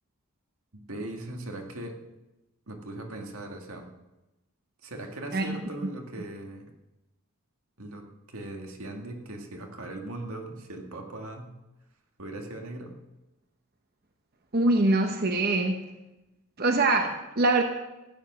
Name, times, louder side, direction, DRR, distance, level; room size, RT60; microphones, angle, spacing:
voice 1, 0.9-2.0 2.7-3.9 4.8-6.7 7.8-11.5 12.2-13.0, right 1 dB, 75° right, 2 dB, 2.0 m, -39 dB
voice 2, 14.5-15.8 16.6-17.6, right 2 dB, 45° right, 5 dB, 0.9 m, -23 dB
14.5 x 9.8 x 6.2 m, 1.0 s
head